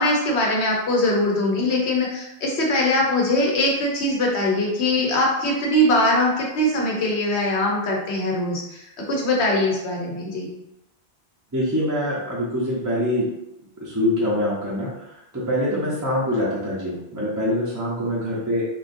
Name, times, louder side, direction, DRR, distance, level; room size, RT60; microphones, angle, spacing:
voice 1, 0.0-10.5 15.7-15.9, left 1 dB, 85° left, -1 dB, 1.1 m, -22 dB
voice 2, 11.5-13.3 13.8-18.6, left 1 dB, 20° right, -7 dB, 0.6 m, -24 dB
3.7 x 2.5 x 2.6 m, 0.87 s
omnidirectional pair, 1.1 m